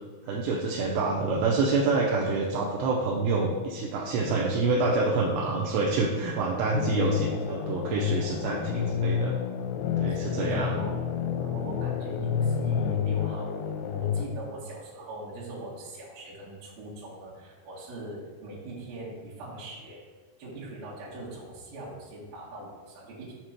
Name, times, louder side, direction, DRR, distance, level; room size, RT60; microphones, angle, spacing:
voice 1, 0.3-9.4 10.0-10.8, right 3 dB, 85° right, -3 dB, 2.9 m, -27 dB
sound 1, 6.7-14.2, left 8 dB, 90° left, 2.8 m, -29 dB
voice 2, 10.1-11.0 11.3-20.0 20.4-23.3, right 1 dB, 60° right, -8 dB, 3.2 m, -41 dB
7.6 x 2.9 x 5.7 m, 1.5 s
omnidirectional pair, 5.0 m